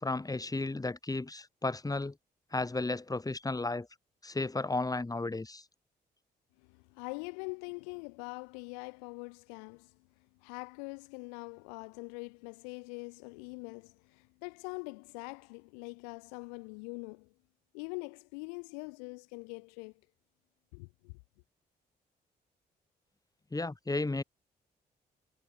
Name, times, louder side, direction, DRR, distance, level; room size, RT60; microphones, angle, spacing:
voice 1, 0.0-2.1 2.5-3.9 4.2-5.6 23.5-24.2, left 2 dB, 15° left, 1.4 m, -33 dB
voice 2, 6.6-10.0 10.4-17.3 17.7-19.9 20.7-21.1, left 36 dB, 85° left, 0.6 m, -43 dB
hypercardioid pair, 40°, 21 cm